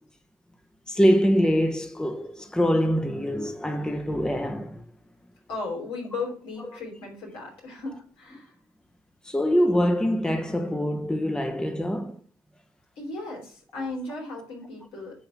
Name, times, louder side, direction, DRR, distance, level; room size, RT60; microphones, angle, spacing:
voice 1, 0.9-4.9 6.7-6.8 9.2-12.2 13.7-13.9, equal, 10° left, 0.9 m, -24 dB
voice 2, 5.5-8.5 13.0-15.3, left 3 dB, 70° left, 3.2 m, -36 dB
9.5 x 3.4 x 5.8 m
hypercardioid pair, 45°, 9 cm